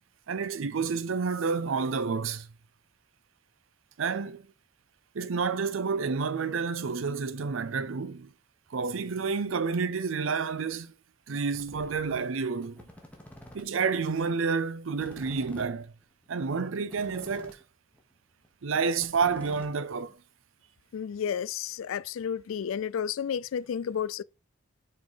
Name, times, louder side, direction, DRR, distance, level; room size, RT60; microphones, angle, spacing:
voice 1, 0.3-2.5 4.0-4.5 5.1-8.3 8.7-10.9 11.3-12.8 13.5-15.9 16.3-17.6 18.6-20.2, right 5 dB, 75° right, 0.5 m, -29 dB
sound 1, 11.5-12.2 12.6-13.6 14.0-14.1 14.2-14.3 14.6-14.7 14.9-17.6 17.9-18.1 18.4-18.5 18.7-20.1, left 1 dB, 5° left, 1.3 m, -48 dB
voice 2, 20.9-24.2, left 8 dB, 80° left, 0.3 m, -32 dB
5.4 x 4.1 x 4.8 m
head